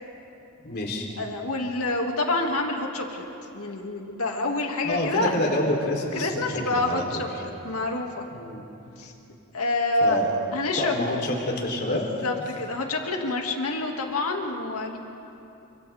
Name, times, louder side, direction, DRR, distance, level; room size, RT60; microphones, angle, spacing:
voice 1, 0.6-1.1 4.8-6.4 6.7-7.2 8.3-8.6 10.0-10.3 10.8-12.0, left 1 dB, 50° left, -1 dB, 3.5 m, -27 dB
voice 2, 1.2-3.2 3.5-5.3 6.1-8.3 9.0-9.1 9.5-10.2 10.5-11.2 11.9-15.0, left 2 dB, 85° left, 2 dB, 2.3 m, -27 dB
29.5 x 25.5 x 3.6 m, 2.8 s
head